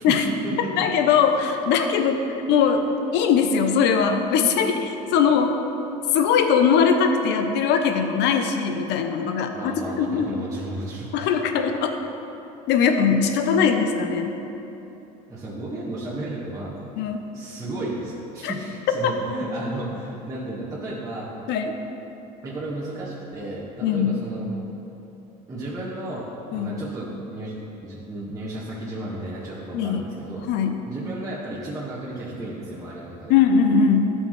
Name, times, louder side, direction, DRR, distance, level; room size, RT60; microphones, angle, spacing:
voice 1, 0.0-0.9 9.5-11.3 15.3-16.7 17.3-21.3 22.4-24.5 25.5-26.3 26.5-27.5 27.8-30.5 30.8-33.3, right 1 dB, 15° right, -8 dB, 1.8 m, -33 dB
voice 2, 0.6-2.2 2.5-2.9 3.1-5.6 6.1-10.5 11.1-12.0 12.7-14.3 17.0-17.2 18.4-18.5 19.0-19.1 21.5-21.7 23.8-24.2 26.5-26.8 29.7-30.1 30.4-30.8 33.3-34.1, left 6 dB, 60° left, 6 dB, 0.8 m, -21 dB
12.5 x 6.5 x 3.3 m, 3.0 s
hypercardioid pair, 80°, 20 cm